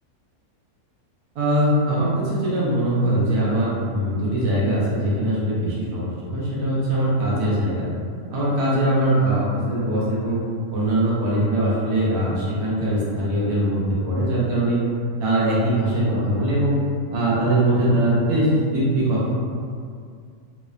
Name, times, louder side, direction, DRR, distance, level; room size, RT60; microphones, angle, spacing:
voice 1, 1.3-7.9 8.3-10.4 10.7-14.8 15.2-16.8 17.1-19.4, right 1 dB, 90° right, -8 dB, 1.2 m, -21 dB
2.9 x 2.1 x 2.3 m, 2.2 s
omnidirectional pair, 1.6 m